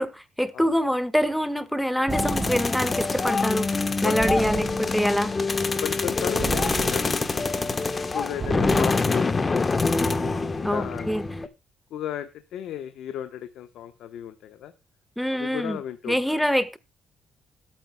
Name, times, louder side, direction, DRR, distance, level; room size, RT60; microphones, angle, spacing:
voice 1, 0.0-5.4 8.5-8.9 10.6-11.2 15.2-15.8 16.1-16.8, equal, ahead, 1.3 m, -25 dB
sound 1, 2.1-11.5, left 3 dB, 30° left, 1.2 m, -25 dB
sound 2, 2.1-3.0 4.2-5.2 6.4-7.4 8.4-9.3, right 4 dB, 35° right, 1.6 m, -33 dB
voice 2, 5.8-7.6 8.1-9.7 10.5-11.1 11.9-14.7 15.3-16.4, left 11 dB, 85° left, 1.0 m, -35 dB
21.0 x 9.0 x 2.3 m
cardioid pair, 90°, 0 cm